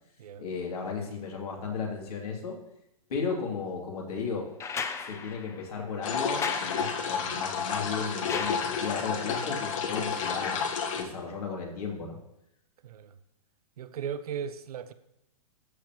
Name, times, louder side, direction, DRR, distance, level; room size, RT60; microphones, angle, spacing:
voice 1, 0.4-2.6 3.1-4.5 5.0-10.6 11.0-12.2, left 5 dB, 75° left, 3.0 m, -34 dB
sound 1, 4.6-9.2 10.8-10.9, left 5 dB, 15° left, 0.5 m, -38 dB
sound 2, 6.0-11.0, left 6 dB, 55° left, 1.3 m, -31 dB
voice 2, 13.8-14.9, right 7 dB, 75° right, 0.7 m, -36 dB
13.0 x 7.2 x 3.1 m
hypercardioid pair, 130°, 20 cm